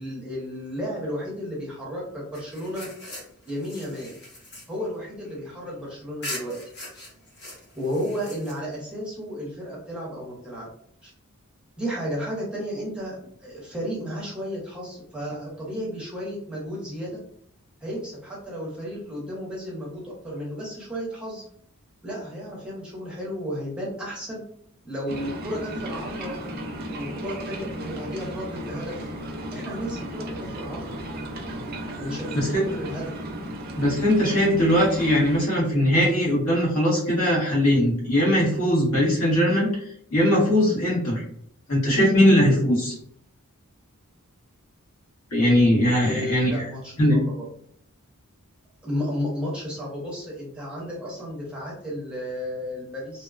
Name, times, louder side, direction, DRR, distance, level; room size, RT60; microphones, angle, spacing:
voice 1, 0.0-2.9 3.4-4.1 4.7-6.6 7.7-10.7 11.0-11.1 11.8-17.2 17.8-21.4 22.0-24.4 24.8-26.4 26.9-29.1 29.5-30.9 32.0-33.0 46.0-47.4 48.8-53.2, equal, 5° right, -5 dB, 0.7 m, -33 dB
sound 1, 2.3-5.7 6.2-8.9, left 1 dB, 55° left, 1.0 m, -41 dB
sound 2, 25.1-35.4, right 1 dB, 45° right, 0.4 m, -35 dB
voice 2, 33.8-39.7 40.1-41.2 41.7-42.9 45.3-46.6 47.0-47.2, equal, 80° left, -5 dB, 1.3 m, -20 dB
2.7 x 2.1 x 2.4 m, 0.66 s
head